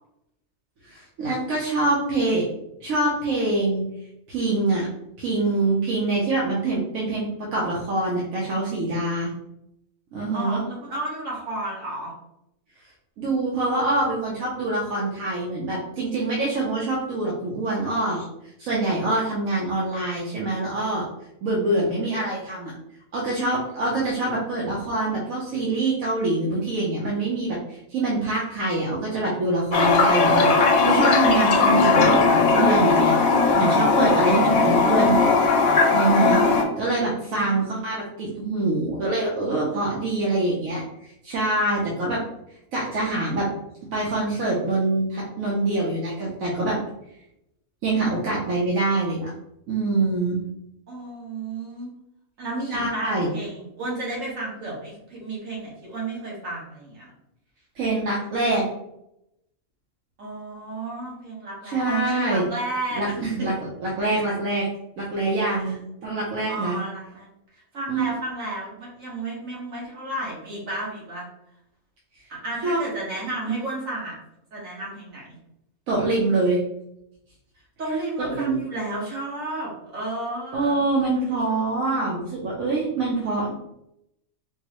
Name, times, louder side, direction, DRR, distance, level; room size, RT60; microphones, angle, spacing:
voice 1, 0.8-2.4 2.8-3.8 4.3-4.9 5.2-9.3 10.1-10.6 13.2-18.2 18.6-21.0 21.4-22.7 23.1-33.1 33.6-35.4 35.9-36.4 36.8-42.2 42.7-43.5 43.9-46.8 47.8-49.3 49.7-50.4 52.7-53.3 57.8-58.6 61.7-62.4 62.9-63.5 63.8-64.7 65.0-65.8 66.0-66.8 67.9-68.0 72.6-72.8 75.9-76.6 78.2-78.6 80.5-83.5, right 2 dB, 85° right, -5 dB, 1.2 m, -25 dB
voice 2, 10.3-12.1 36.5-37.8 50.9-51.9 52.4-57.1 60.2-63.5 65.6-65.8 66.5-71.3 72.3-74.1 74.5-75.2 77.8-80.8 81.1-81.2, right 2 dB, 70° right, -4 dB, 1.6 m, -33 dB
Toilet flush, 29.7-36.6, left 4 dB, 85° left, 1.1 m, -18 dB
4.5 x 2.0 x 2.9 m, 0.82 s
omnidirectional pair, 1.4 m